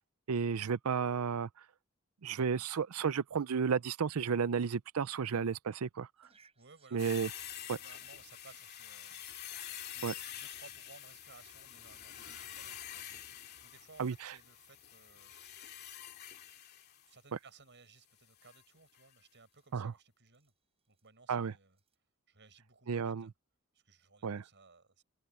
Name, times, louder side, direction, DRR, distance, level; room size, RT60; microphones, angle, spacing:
voice 1, 0.3-1.5 2.2-6.1 6.9-7.3 7.7-7.8 10.0-10.1 14.0-14.3 19.7-19.9 21.3-21.5 22.9-23.3 24.2-24.4, right 6 dB, 75° right, 0.5 m, -32 dB
sound 1, 6.2-10.6 11.3-11.5 11.8-12.2 12.9-13.1 14.0-14.1 14.4-17.4 17.7-19.1 19.4-19.7 20.3-21.1 21.7-22.0, right 5 dB, 30° right, 6.6 m, -70 dB
voice 2, 6.6-7.2 7.8-15.3 17.0-20.5 20.9-21.8 22.3-23.3 23.7-25.0, right 4 dB, 55° right, 7.5 m, -60 dB
sound 2, 7.0-17.1 18.4-18.6 18.9-19.0, left 10 dB, 50° left, 2.7 m, -47 dB
head